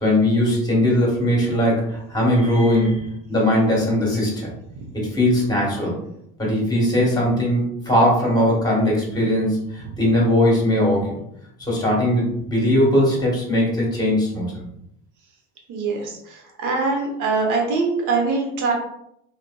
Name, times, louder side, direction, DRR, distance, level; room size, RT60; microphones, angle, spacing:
voice 1, 0.0-4.5 4.9-6.0 6.4-11.2 11.6-14.5, left 1 dB, 10° left, -3 dB, 1.2 m, -19 dB
voice 2, 15.7-18.7, right 4 dB, 55° right, 1 dB, 0.9 m, -23 dB
2.5 x 2.2 x 2.2 m, 0.75 s
hypercardioid pair, 75°, 37 cm